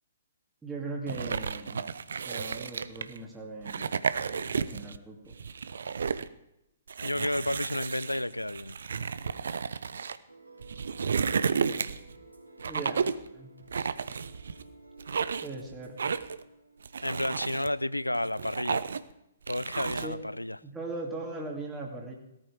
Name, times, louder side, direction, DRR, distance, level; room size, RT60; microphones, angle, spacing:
voice 1, 0.6-1.8 2.2-4.1 4.6-5.3 12.7-13.0 13.3-13.5 15.4-16.0 20.0-20.2 20.6-22.1, right 2 dB, 10° right, 2.6 m, -39 dB
sound 1, 1.1-3.2 3.6-5.0 5.3-6.3 6.9-10.2 10.6-12.1 12.6-13.3 13.7-14.6 15.0-15.5 16.0-16.4 16.8-17.7 18.1-19.1 19.5-20.1, right 6 dB, 60° right, 0.8 m, -32 dB
voice 2, 7.0-8.7 17.0-18.8 19.5-20.6, left 1 dB, 85° left, 0.6 m, -31 dB
sound 2, 10.3-17.6, right 3 dB, 85° right, 3.4 m, -53 dB
18.0 x 13.5 x 5.0 m
figure-of-eight pair, 125°, 0 cm